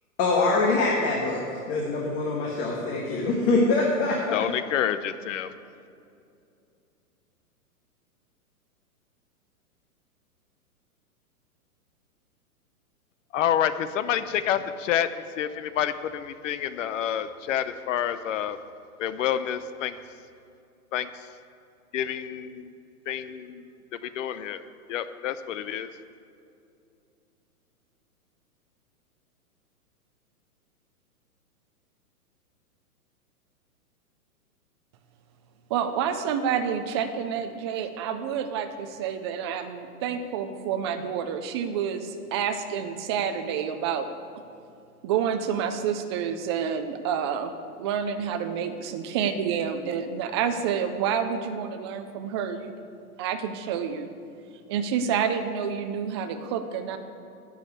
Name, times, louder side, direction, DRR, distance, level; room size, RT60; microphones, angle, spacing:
voice 1, 0.2-1.4 1.7-4.3, left 3 dB, 30° left, -2 dB, 1.6 m, -24 dB
voice 2, 4.3-5.5 13.3-18.6 19.0-20.0 20.9-21.1 21.9-22.7 23.1-23.7 24.0-24.6 24.9-25.9, left 10 dB, 55° left, 13 dB, 0.8 m, -28 dB
voice 3, 35.7-44.1 45.0-47.5 47.8-52.8 53.2-54.1 54.7-57.0, right 7 dB, 20° right, 8 dB, 0.4 m, -28 dB
9.7 x 6.5 x 8.1 m, 2.6 s
hypercardioid pair, 130°, 45 cm